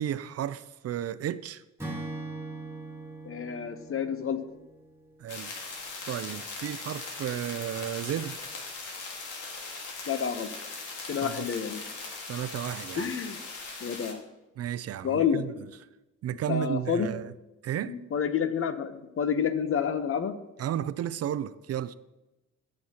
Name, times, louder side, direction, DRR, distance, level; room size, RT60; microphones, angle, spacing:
voice 1, 0.0-1.6 5.2-5.5 6.1-8.4 11.2-11.5 12.3-13.1 14.6-15.7 16.2-17.3 17.6-18.0 20.6-21.9, right 11 dB, 55° right, 0.5 m, -33 dB
Acoustic guitar / Strum, 1.8-5.2, right 2 dB, 10° right, 1.9 m, -40 dB
voice 2, 3.2-4.4 10.1-10.5 11.1-11.8 13.0-13.4 13.8-14.2 15.0-15.4 16.5-17.1 17.9-20.4, left 7 dB, 45° left, 0.9 m, -29 dB
sound 1, 5.3-14.1, left 3 dB, 85° left, 1.9 m, -40 dB
14.5 x 6.5 x 2.9 m
cardioid pair, 90°, 30 cm